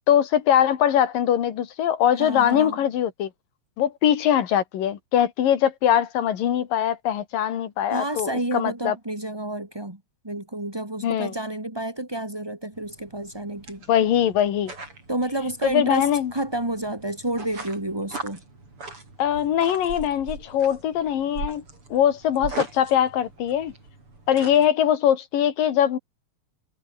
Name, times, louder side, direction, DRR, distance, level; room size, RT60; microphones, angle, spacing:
voice 1, 0.1-3.3 3.8-9.0 11.0-11.3 13.9-14.7 15.6-16.3 19.2-21.6 21.9-23.7 24.3-26.0, left 10 dB, 70° left, 3.6 m, -22 dB
voice 2, 2.1-2.8 7.9-13.8 15.1-18.4, right 1 dB, 10° right, 2.3 m, -30 dB
sound 1, 12.7-24.7, right 3 dB, 35° right, 8.0 m, -40 dB
omnidirectional pair, 4.2 m